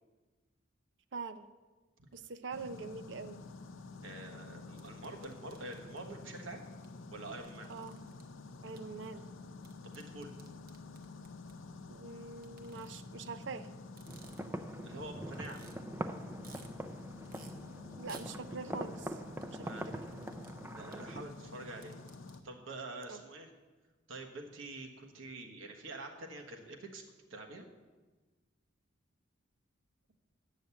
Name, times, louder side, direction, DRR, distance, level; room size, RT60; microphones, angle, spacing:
voice 1, 1.1-1.5 2.1-3.4 7.7-8.0 8.6-9.3 11.9-13.7 18.0-19.2 19.5-19.7 23.1-23.2, right 4 dB, 65° right, 12 dB, 0.5 m, -44 dB
sound 1, 2.5-22.4, left 3 dB, 85° left, 0.6 m, -50 dB
voice 2, 4.0-6.6 7.1-7.7 9.8-10.3 14.8-15.6 19.6-20.0 20.7-21.9 22.4-23.5 24.1-27.0 27.3-27.6, right 2 dB, 85° right, 2 dB, 1.4 m, -46 dB
sound 2, 4.8-6.2 6.8-6.9 7.1-8.2 8.8-8.9 9.6-11.5 12.4-13.3 13.8-14.6 15.0-15.1 15.3-15.7 16.1-16.7 17.3-17.5 18.0-18.3 19.4-20.5 20.9-21.0 21.6-22.4, right 5 dB, 45° right, 1.0 m, -57 dB
sound 3, 14.1-21.2, right 1 dB, 10° right, 0.4 m, -43 dB
8.8 x 6.5 x 8.2 m, 1.3 s
head